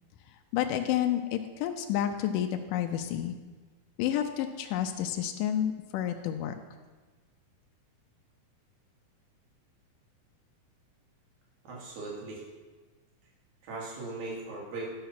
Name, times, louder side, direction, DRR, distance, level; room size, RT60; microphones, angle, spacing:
voice 1, 0.5-3.4 4.0-6.5, left 10 dB, 80° left, 5 dB, 2.0 m, -30 dB
voice 2, 11.7-12.4 13.6-14.9, right 2 dB, 90° right, -4 dB, 3.9 m, -38 dB
11.5 x 5.7 x 5.9 m, 1.3 s
omnidirectional pair, 4.0 m